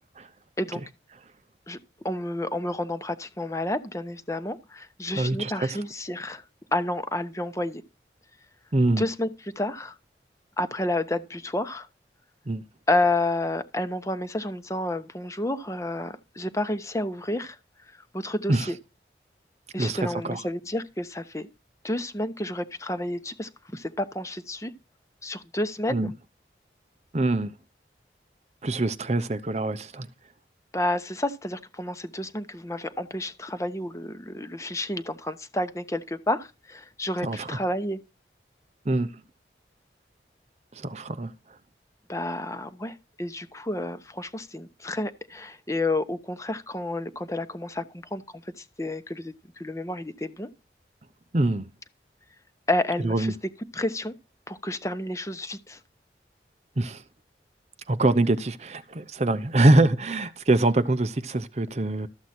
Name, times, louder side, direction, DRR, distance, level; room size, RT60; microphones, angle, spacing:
voice 1, 2.0-6.4 6.7-7.8 9.0-9.9 10.6-11.9 12.9-17.6 18.1-18.8 19.7-21.5 21.8-24.7 25.2-26.1 30.7-38.0 42.1-50.5 52.7-53.3 53.7-54.1 54.5-55.8, left 1 dB, 15° left, 0.9 m, -30 dB
voice 2, 5.1-5.8 8.7-9.1 12.5-12.6 18.5-18.7 19.8-20.4 25.9-26.1 27.1-27.5 28.6-30.1 37.2-37.6 38.9-39.1 40.7-41.3 51.3-51.7 53.0-53.3 56.8-57.0 57.9-62.1, right 2 dB, 40° right, 0.7 m, -24 dB
13.0 x 7.9 x 4.3 m
head